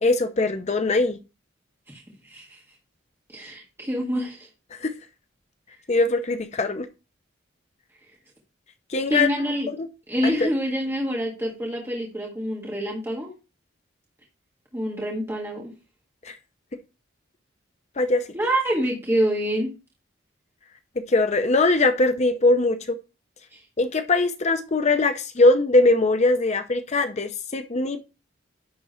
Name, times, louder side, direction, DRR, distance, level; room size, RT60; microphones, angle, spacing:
voice 1, 0.0-1.2 4.8-4.9 5.9-6.9 8.9-9.3 10.2-10.5 16.3-16.4 18.0-18.2 21.1-23.0 23.8-28.0, left 2 dB, 35° left, 0.6 m, -21 dB
voice 2, 1.9-2.6 3.3-4.5 9.1-9.7 10.1-13.3 14.7-15.7 18.3-19.7 23.5-23.6, equal, 15° right, 1.8 m, -26 dB
10.5 x 3.7 x 4.3 m
head